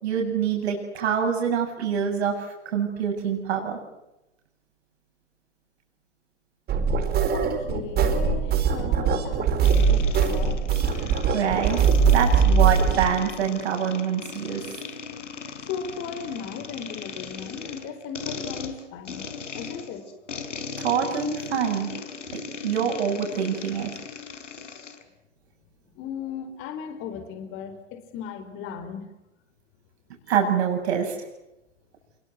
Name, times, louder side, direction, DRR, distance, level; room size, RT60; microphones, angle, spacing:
voice 1, 0.0-3.8 11.3-11.8 12.1-14.8 20.8-21.9 22.3-23.9 30.3-31.1, right 7 dB, 60° right, 2 dB, 8.0 m, -25 dB
sound 1, 6.7-13.0, right 6 dB, 25° right, 4.8 m, -21 dB
voice 2, 7.3-10.6 15.7-19.2 19.5-20.3 24.7-24.9 25.9-29.1, left 7 dB, 35° left, 8 dB, 4.3 m, -36 dB
sound 2, 9.6-25.0, left 5 dB, 80° left, 4.5 m, -38 dB
28.5 x 23.0 x 7.9 m, 0.93 s
hypercardioid pair, 115°, 36 cm